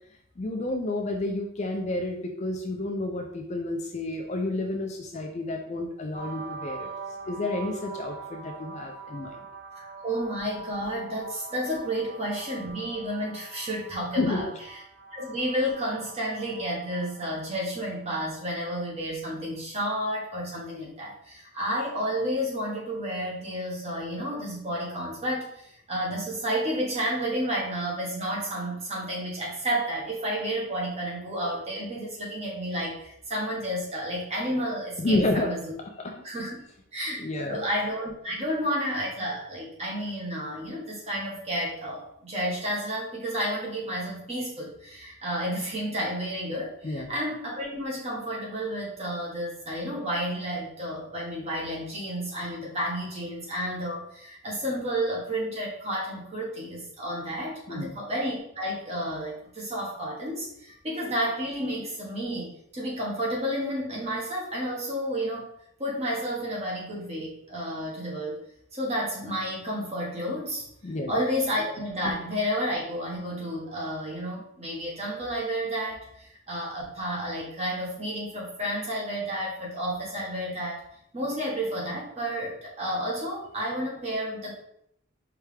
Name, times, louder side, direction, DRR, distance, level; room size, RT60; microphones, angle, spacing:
voice 1, 0.4-6.9 7.2-9.4 14.2-14.4 35.0-35.5 36.0-36.2 37.2-37.6 46.8-47.1 57.7-57.9 70.8-71.1, left 2 dB, 30° left, 3 dB, 0.4 m, -30 dB
sound 1, 6.1-17.7, right 4 dB, 45° right, 0.7 m, -43 dB
voice 2, 9.7-14.5 15.1-35.6 36.2-36.6 36.9-37.2 37.5-65.4 65.8-68.4 68.7-70.6 71.1-80.8 81.1-84.6, equal, 30° right, -3 dB, 1.3 m, -31 dB
4.7 x 3.3 x 3.3 m, 0.73 s
head